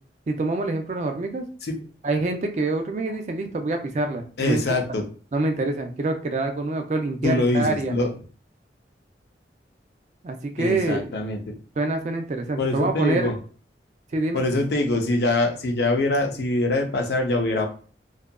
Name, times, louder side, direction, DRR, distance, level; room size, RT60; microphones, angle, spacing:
voice 1, 0.3-1.4 2.0-4.6 5.3-7.9 10.2-11.1 11.8-13.3 14.1-14.5, right 2 dB, 40° right, 5 dB, 0.3 m, -26 dB
voice 2, 4.4-5.0 7.2-8.1 10.6-11.6 12.6-13.3 14.3-17.7, left 2 dB, 65° left, 3 dB, 0.5 m, -24 dB
2.7 x 2.3 x 2.2 m, 0.40 s
head